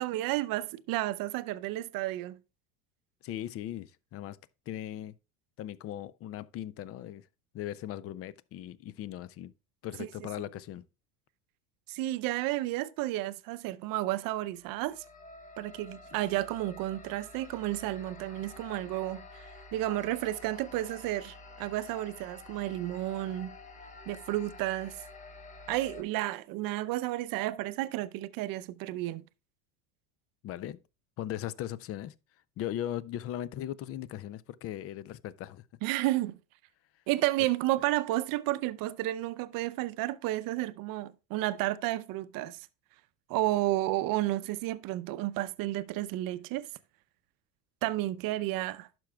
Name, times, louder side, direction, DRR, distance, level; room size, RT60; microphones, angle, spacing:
voice 1, 0.0-2.4 10.0-10.1 11.9-15.0 15.6-19.4 19.7-23.5 24.1-25.0 25.7-29.2 35.8-36.4 37.1-42.7 43.3-46.7 47.8-48.9, right 16 dB, 55° right, 0.6 m, -32 dB
voice 2, 3.2-4.4 4.7-5.1 5.6-7.2 7.5-9.5 9.8-10.8 30.4-30.8 31.2-32.1 32.6-35.6, left 12 dB, 35° left, 0.4 m, -38 dB
sound 1, 14.5-26.0, left 3 dB, 15° left, 0.9 m, -49 dB
11.5 x 6.1 x 2.2 m
supercardioid pair, 105°, 43 cm